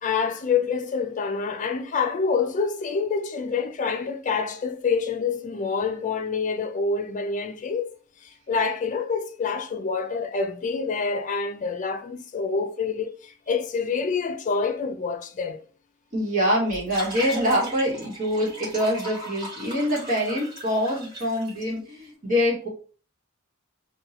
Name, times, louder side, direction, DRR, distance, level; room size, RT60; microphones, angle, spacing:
voice 1, 0.0-7.9 8.5-15.6, left 5 dB, 40° left, 0.4 m, -27 dB
voice 2, 16.1-22.7, equal, 45° right, 1.3 m, -25 dB
sound 1, 16.7-21.6, right 1 dB, 20° right, 1.7 m, -38 dB
3.5 x 2.3 x 2.8 m
head